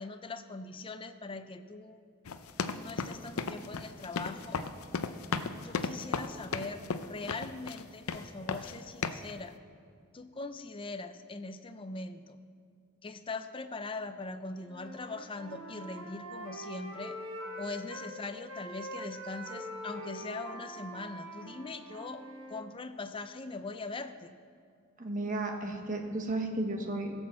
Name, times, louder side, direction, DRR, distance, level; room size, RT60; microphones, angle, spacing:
voice 1, 0.0-2.0 2.7-4.6 5.6-9.6 10.1-12.4 13.0-17.2 17.6-22.2 22.5-24.4, left 3 dB, 25° left, 9 dB, 0.5 m, -41 dB
sound 1, 2.3-7.8 8.1-8.8 9.0-9.3, left 5 dB, 80° left, 0.6 m, -35 dB
Wind instrument woodwind instrument, 14.6-18.1 18.5-22.7, equal, 70° right, 3.7 m, -44 dB
voice 2, 25.0-27.1, right 2 dB, 35° right, 3 dB, 1.3 m, -33 dB
16.0 x 6.2 x 7.3 m, 2.3 s
head